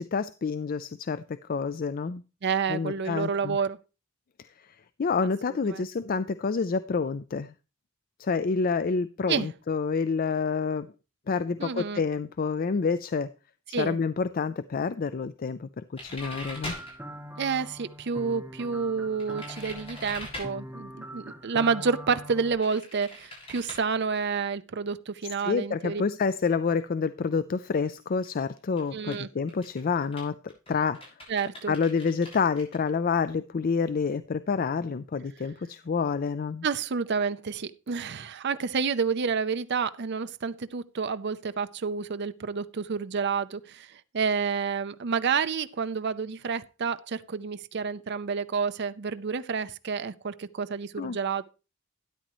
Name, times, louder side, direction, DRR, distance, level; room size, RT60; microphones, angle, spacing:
voice 1, 0.0-2.2 2.7-3.6 5.0-7.5 8.2-10.9 11.3-13.3 13.8-16.7 25.4-30.4 30.7-31.0 31.7-36.6 51.0-51.2, left 5 dB, 45° left, 0.4 m, -28 dB
voice 2, 2.4-3.8 5.7-5.9 9.3-9.5 11.6-12.0 13.7-14.0 17.4-26.0 28.9-29.3 31.3-31.7 36.6-51.4, right 5 dB, 55° right, 0.6 m, -29 dB
sound 1, 16.0-17.0 19.2-20.5 22.6-23.8 27.8-27.9 28.2-28.4 28.8-29.1 29.5-32.9, left 1 dB, 30° left, 6.7 m, -41 dB
sound 2, 16.2-22.6, equal, 10° right, 1.3 m, -43 dB
12.5 x 10.5 x 3.0 m
head